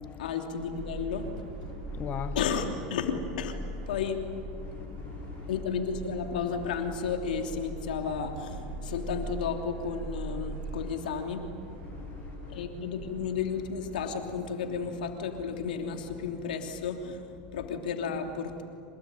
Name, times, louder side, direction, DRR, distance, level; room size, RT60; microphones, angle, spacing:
voice 1, 0.2-1.3 2.3-3.6 3.9-4.2 5.5-11.4 12.5-18.6, left 6 dB, 90° left, 3.1 m, -33 dB
Subway metro underground, 0.6-16.7, right 2 dB, 80° right, 5.8 m, -41 dB
voice 2, 1.7-2.4 4.6-5.5 11.8-12.6, left 10 dB, 35° left, 0.8 m, -41 dB
26.5 x 19.5 x 9.2 m
supercardioid pair, 115°, 5 cm